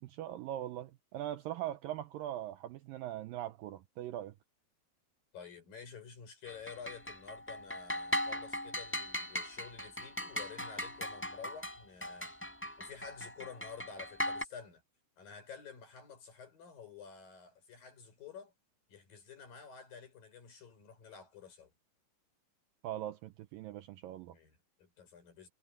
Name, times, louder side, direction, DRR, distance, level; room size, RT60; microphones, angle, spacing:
voice 1, 0.0-4.3 22.8-24.4, right 12 dB, 75° right, 2.2 m, -41 dB
voice 2, 5.3-12.4 12.8-14.8 15.2-18.5 18.9-21.7 24.3-25.5, left 6 dB, 60° left, 7.7 m, -51 dB
sound 1, 6.5-14.4, left 1 dB, 5° left, 4.8 m, -39 dB
omnidirectional pair, 4.6 m